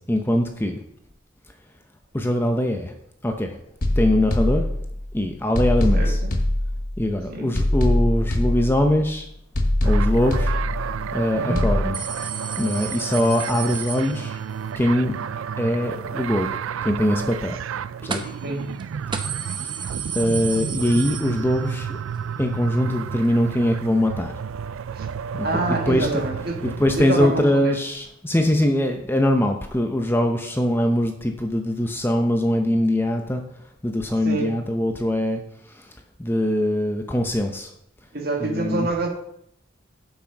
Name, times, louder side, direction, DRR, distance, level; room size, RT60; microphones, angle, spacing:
voice 1, 0.1-0.8 2.1-2.9 3.2-3.6 4.0-4.7 5.1-6.2 7.0-9.3 9.8-10.5 11.1-12.0 12.6-14.4 14.8-15.2 15.6-16.5 16.8-17.6 18.0-18.3 20.1-22.0 22.4-24.3 25.3-26.2 26.6-33.4 33.8-35.4 35.7-35.8 36.2-37.7 38.4-38.9, left 1 dB, 10° left, 4 dB, 0.7 m, -22 dB
sound 1, 3.8-5.1 5.5-7.1 7.5-9.1 9.5-11.1 11.5-11.8, left 1 dB, 45° left, 1.0 m, -22 dB
voice 2, 5.9-6.3 7.3-7.5 11.3-11.7 18.4-18.7 24.9-25.1 25.4-26.6 26.9-27.8 34.2-34.6 38.1-39.1, right 2 dB, 50° right, 2 dB, 1.7 m, -26 dB
sound 2, 9.8-27.4, right 7 dB, 85° right, 0.4 m, -31 dB
sound 3, 11.9-14.6 18.1-18.5 18.8-18.9 19.1-21.9 22.2-22.3 23.3-23.4, right 6 dB, 25° right, 0.8 m, -33 dB
8.3 x 6.1 x 6.0 m, 0.74 s
head